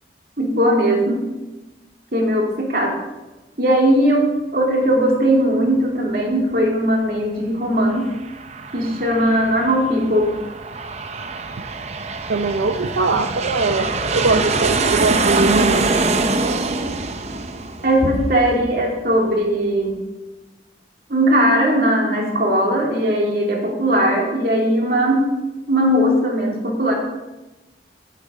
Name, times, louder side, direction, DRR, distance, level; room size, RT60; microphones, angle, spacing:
voice 1, 0.4-1.3 2.1-3.0 3.6-8.1 8.7-10.3 17.8-20.0 21.1-25.3 25.6-26.9, equal, 55° right, -1 dB, 2.6 m, -18 dB
Aircraft, 7.9-19.0, right 3 dB, 35° right, 0.7 m, -24 dB
voice 2, 12.3-15.9, right 3 dB, 80° right, 6 dB, 0.6 m, -21 dB
11.5 x 7.9 x 5.0 m, 1.1 s
head